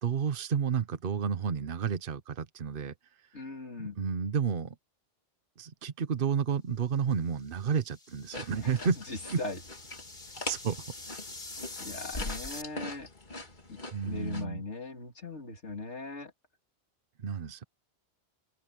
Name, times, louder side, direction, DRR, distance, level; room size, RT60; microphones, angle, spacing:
voice 1, 0.0-2.9 3.8-4.7 5.6-9.0 9.3-9.4 10.5-10.8 13.9-14.6 17.2-17.6, right 6 dB, 55° right, 1.1 m, -31 dB
voice 2, 3.3-4.0 8.6-8.8 9.1-9.6 11.8-13.1 13.7-16.3, left 3 dB, 85° left, 3.2 m, -39 dB
sound 1, 7.5-12.6, left 3 dB, 65° left, 3.3 m, -45 dB
sound 2, 8.3-14.4, left 2 dB, 45° left, 2.4 m, -42 dB
open air
omnidirectional pair, 1.2 m